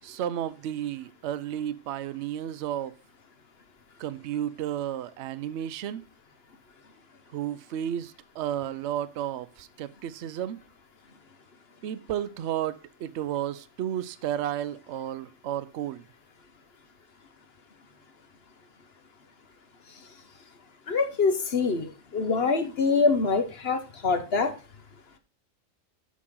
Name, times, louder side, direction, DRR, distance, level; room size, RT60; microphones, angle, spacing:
voice 1, 0.0-3.0 4.0-6.0 7.3-10.6 11.8-16.0, right 11 dB, 65° right, 0.8 m, -32 dB
voice 2, 20.9-24.5, left 4 dB, 55° left, 1.2 m, -25 dB
8.5 x 6.2 x 3.8 m
omnidirectional pair, 1.3 m